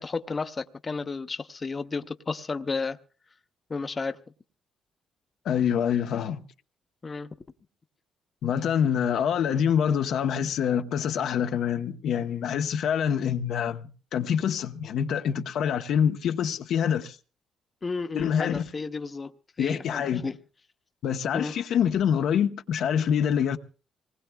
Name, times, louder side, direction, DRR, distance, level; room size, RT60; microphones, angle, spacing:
voice 1, 0.0-3.0 3.7-4.2 7.0-7.3 17.8-19.3 19.6-20.4 21.3-21.5, left 4 dB, 30° left, 0.7 m, -32 dB
voice 2, 5.4-6.4 8.4-17.2 18.1-18.7 19.6-20.2 21.0-23.6, left 8 dB, 75° left, 0.9 m, -26 dB
26.0 x 20.0 x 2.3 m
cardioid pair, 90°, 0 cm